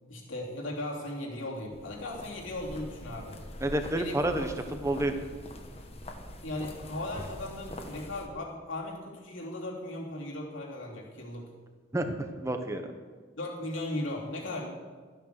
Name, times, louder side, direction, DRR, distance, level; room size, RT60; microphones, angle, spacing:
voice 1, 0.1-3.4 3.9-4.8 6.4-11.5 13.4-14.7, left 1 dB, 85° left, -3 dB, 3.0 m, -37 dB
sound 1, 1.7-8.3, left 1 dB, 30° left, 1.3 m, -44 dB
voice 2, 3.6-4.5 4.8-5.1 11.9-12.8, right 1 dB, 15° right, 6 dB, 1.0 m, -29 dB
13.5 x 9.1 x 6.6 m, 1.5 s
head